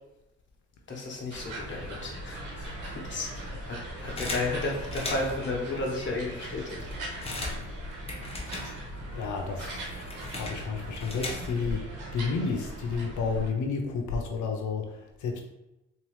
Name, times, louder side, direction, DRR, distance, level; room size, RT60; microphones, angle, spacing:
voice 1, 0.9-6.9, left 2 dB, 40° left, -2 dB, 1.2 m, -33 dB
sound 1, 1.3-13.5, right 1 dB, 80° right, 1.2 m, -39 dB
sound 2, 4.2-5.5 6.1-6.2 6.5-9.1 9.4-11.8, left 2 dB, 20° left, 0.9 m, -38 dB
voice 2, 9.1-9.9 10.3-11.8 12.1-15.4, left 5 dB, 75° left, 3 dB, 0.7 m, -31 dB
3.7 x 2.9 x 3.2 m, 0.94 s
cardioid pair, 90°, 30 cm